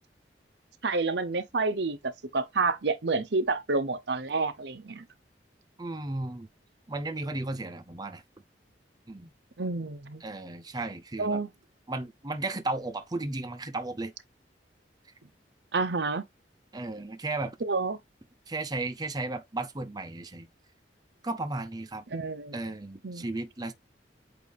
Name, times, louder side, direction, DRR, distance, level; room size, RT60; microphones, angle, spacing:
voice 1, 0.8-5.0 9.6-10.2 11.2-11.5 15.7-16.2 17.6-18.0 22.1-22.5 23.0-23.2, right 3 dB, 70° right, 0.8 m, -29 dB
voice 2, 5.8-6.5 6.9-8.2 9.1-9.3 10.2-11.4 11.9-14.1 16.7-17.6 18.5-20.5 21.2-22.0 22.5-23.7, right 2 dB, 25° right, 0.7 m, -34 dB
8.3 x 2.8 x 4.1 m
head